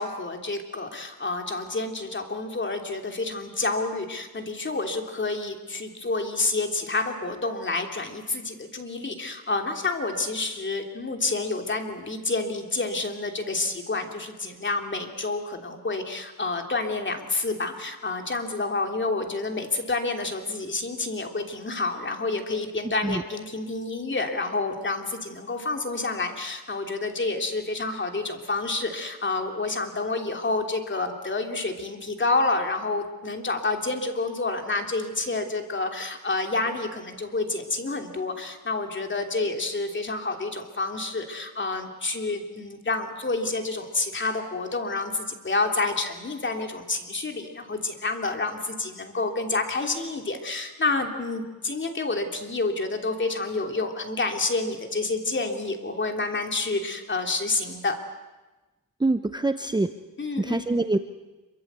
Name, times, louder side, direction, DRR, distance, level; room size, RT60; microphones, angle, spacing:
voice 1, 0.0-58.0 60.2-60.8, left 3 dB, 30° left, 4 dB, 3.2 m, -29 dB
voice 2, 59.0-59.9 60.4-61.0, right 2 dB, 10° right, 9 dB, 0.8 m, -24 dB
26.5 x 24.0 x 8.2 m, 1.1 s
wide cardioid pair, 120°, 35 cm